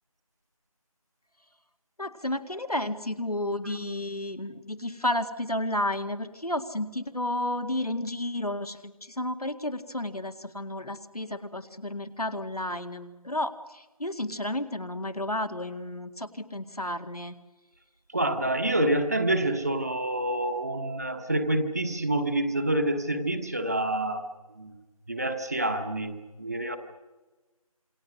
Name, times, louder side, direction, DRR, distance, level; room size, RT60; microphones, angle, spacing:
voice 1, 2.0-17.4, left 1 dB, 85° left, 8 dB, 2.2 m, -32 dB
voice 2, 18.1-24.3 24.6-24.7 25.1-26.8, right 1 dB, 25° right, 6 dB, 1.2 m, -27 dB
27.5 x 22.5 x 6.4 m, 1.2 s
figure-of-eight pair, 170°, 19 cm